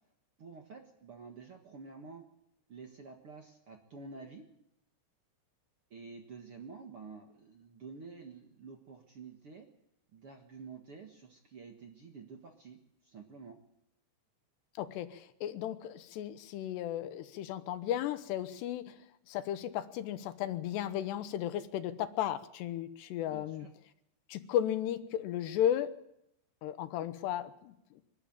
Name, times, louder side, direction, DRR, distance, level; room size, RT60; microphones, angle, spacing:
voice 1, 0.4-2.2 2.7-4.4 5.9-9.7 10.1-13.6 23.3-23.7, right 4 dB, 60° right, 3 dB, 1.5 m, -49 dB
voice 2, 14.8-18.9 19.3-23.7 24.3-25.9 26.6-27.7, left 11 dB, 75° left, 12 dB, 3.0 m, -34 dB
24.0 x 12.5 x 8.8 m, 0.81 s
omnidirectional pair, 5.1 m